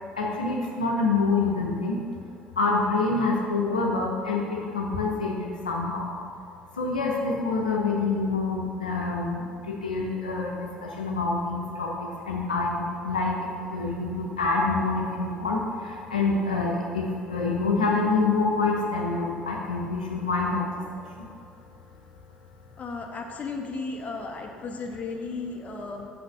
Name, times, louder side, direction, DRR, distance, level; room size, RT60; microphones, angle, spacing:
voice 1, 0.2-2.0 2.6-6.1 6.8-21.3, left 3 dB, 90° left, -2 dB, 0.8 m, -27 dB
voice 2, 22.8-26.1, left 4 dB, 35° left, 2 dB, 1.2 m, -35 dB
6.5 x 6.1 x 5.8 m, 2.3 s
hypercardioid pair, 55°, 4 cm